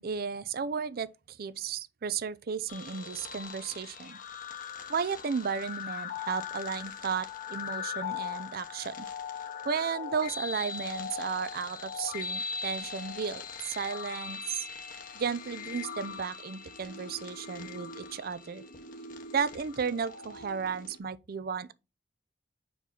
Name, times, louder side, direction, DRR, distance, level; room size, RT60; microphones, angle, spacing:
voice 1, 0.0-4.2 4.9-9.1 9.6-14.6 15.1-18.6 19.3-21.7, right 6 dB, 55° right, 0.5 m, -34 dB
sound 1, 2.7-21.0, left 6 dB, 50° left, 1.0 m, -40 dB
5.5 x 4.6 x 3.8 m
head